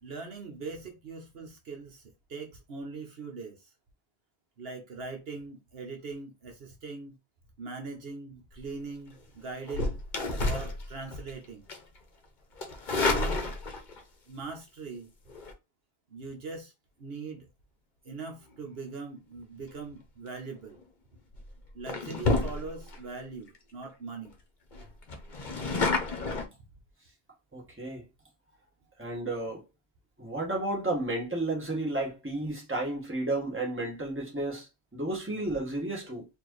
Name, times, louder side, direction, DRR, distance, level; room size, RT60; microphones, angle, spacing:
voice 1, 0.0-3.7 4.6-7.1 7.6-10.0 10.4-11.7 12.7-13.6 14.3-15.1 16.1-16.7 17.0-17.5 18.0-20.8 21.7-24.3, right 4 dB, 65° right, 1.1 m, -41 dB
sound 1, 9.6-11.3 11.7-12.0 12.6-14.0 15.3-15.5 20.6-20.8 21.3-21.5 21.9-23.0 23.5-23.6 23.8-23.9 24.2-24.3 24.7-26.4, left 3 dB, 50° left, 1.0 m, -30 dB
voice 2, 27.5-28.0 29.0-29.6 30.2-36.3, right 2 dB, 10° right, 1.5 m, -32 dB
4.4 x 2.9 x 3.1 m
omnidirectional pair, 1.1 m